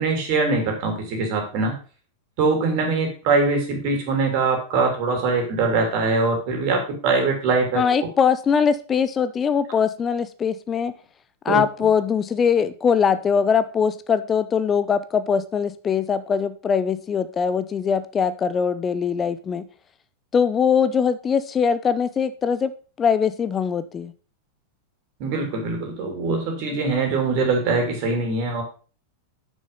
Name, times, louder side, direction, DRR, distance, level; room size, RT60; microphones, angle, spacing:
voice 1, 0.0-1.7 2.4-7.8 11.5-11.6 25.2-28.6, right 3 dB, 45° right, 3 dB, 2.9 m, -22 dB
voice 2, 7.8-10.9 11.4-19.6 20.3-22.7 23.0-24.1, left 6 dB, 20° left, 12 dB, 0.6 m, -22 dB
6.8 x 6.3 x 5.4 m, 0.38 s
figure-of-eight pair, 90°, 0 cm